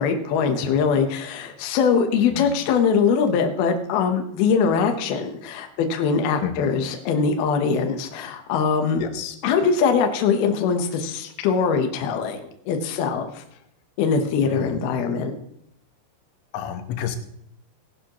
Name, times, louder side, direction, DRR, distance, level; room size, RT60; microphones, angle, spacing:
voice 1, 0.0-9.0 9.4-13.3 14.0-15.3, left 6 dB, 70° left, 5 dB, 2.5 m, -22 dB
voice 2, 9.0-9.4 14.5-14.7 16.5-17.2, left 9 dB, 85° left, 7 dB, 3.7 m, -30 dB
18.0 x 11.5 x 3.0 m, 0.73 s
omnidirectional pair, 5.6 m